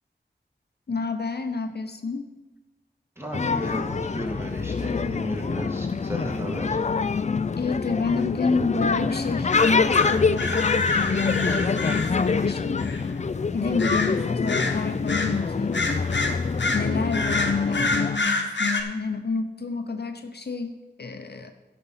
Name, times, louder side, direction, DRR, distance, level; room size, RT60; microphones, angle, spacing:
voice 1, 0.9-2.3 7.6-12.9 13.5-15.8 16.7-21.5, left 4 dB, 65° left, 7 dB, 0.7 m, -29 dB
voice 2, 3.2-6.8 13.6-14.1, equal, 15° right, -1 dB, 2.2 m, -34 dB
sound 1, 3.3-18.2, left 4 dB, 40° left, 0.4 m, -25 dB
sound 2, 9.5-12.4 12.8-13.0 13.8-14.2 14.5-15.3 15.7-18.8, left 3 dB, 85° left, 1.0 m, -28 dB
12.5 x 5.4 x 5.7 m, 1.1 s
wide cardioid pair, 70°, 18 cm